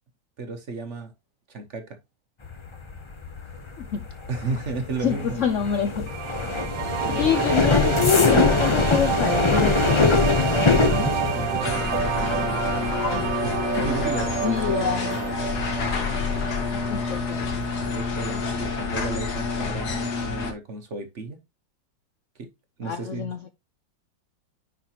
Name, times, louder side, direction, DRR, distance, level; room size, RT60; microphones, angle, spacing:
voice 1, 0.4-1.1 1.5-2.0 4.3-5.4 6.4-6.6 7.0-7.3 10.5-13.0 13.4-15.7 16.8-17.4 17.8-21.4 22.4-22.5 22.8-23.3, right 3 dB, 45° right, 1.1 m, -34 dB
sound 1, 2.4-17.1 17.4-17.8 18.1-18.5, left 3 dB, 40° left, 0.4 m, -24 dB
voice 2, 5.0-6.1 7.1-10.1 14.4-15.1 16.7-17.5 22.8-23.5, left 7 dB, 90° left, 0.6 m, -26 dB
sound 2, 6.1-17.1, right 10 dB, 75° right, 1.3 m, -30 dB
sound 3, 11.6-20.5, left 5 dB, 55° left, 2.0 m, -28 dB
9.9 x 5.0 x 2.9 m
omnidirectional pair, 2.1 m